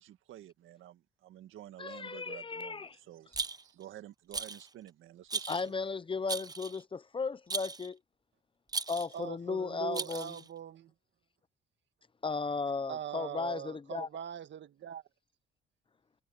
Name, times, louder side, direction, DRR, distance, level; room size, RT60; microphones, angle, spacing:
voice 1, 0.0-5.7, right 13 dB, 85° right, 1.9 m, -51 dB
voice 2, 1.8-3.0 5.5-8.0 8.9-10.4 12.2-14.1, left 4 dB, 25° left, 0.7 m, -35 dB
Rattle, 3.3-3.8 4.3-4.7 5.3-5.7 6.3-6.8 7.5-7.9 8.7-9.2 9.9-10.5, right 4 dB, 20° right, 0.7 m, -37 dB
voice 3, 9.1-10.9 12.9-15.0, right 10 dB, 65° right, 1.9 m, -41 dB
cardioid pair, 90°, 20 cm